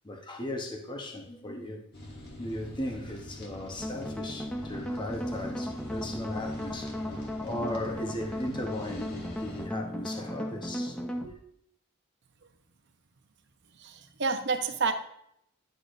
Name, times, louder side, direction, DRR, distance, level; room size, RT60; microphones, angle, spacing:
voice 1, 0.0-1.8 2.4-11.3, left 1 dB, 20° left, 0.9 m, -37 dB
sound 1, 1.9-9.6, left 1 dB, 45° left, 1.5 m, -45 dB
sound 2, 3.8-11.3, left 1 dB, 5° left, 0.5 m, -36 dB
voice 2, 13.8-14.9, right 4 dB, 50° right, 0.7 m, -29 dB
9.7 x 6.6 x 2.5 m
head